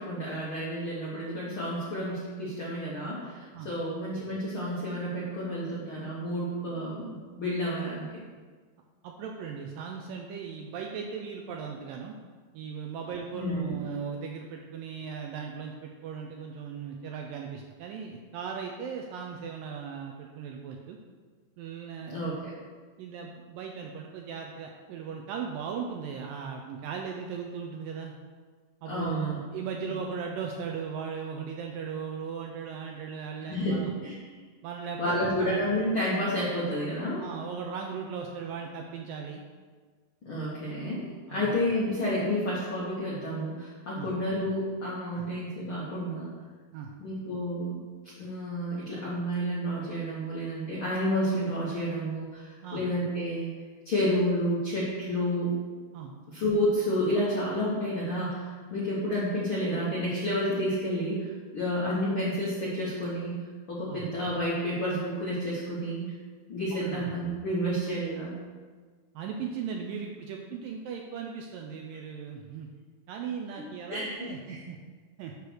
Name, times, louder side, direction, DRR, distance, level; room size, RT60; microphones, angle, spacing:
voice 1, 0.0-8.1 13.3-13.8 22.1-22.5 28.9-29.4 33.5-33.8 34.0-34.1 35.0-37.2 40.2-46.3 47.0-47.8 48.2-53.5 53.8-55.5 56.3-61.3 61.5-63.4 63.7-66.1 66.5-68.3 73.6-74.6, equal, 70° left, -7 dB, 1.2 m, -30 dB
voice 2, 9.0-12.2 12.5-21.0 21.6-22.2 23.0-28.1 28.8-33.9 34.6-35.5 37.2-39.4 41.3-41.6 44.0-44.1 45.1-45.3 46.7-46.9 52.6-52.8 55.9-56.2 63.9-64.1 66.7-67.1 69.1-72.7 73.1-74.8 75.2-75.3, right 6 dB, 80° right, 1 dB, 2.0 m, -37 dB
9.8 x 3.3 x 6.2 m, 1.5 s
omnidirectional pair, 4.4 m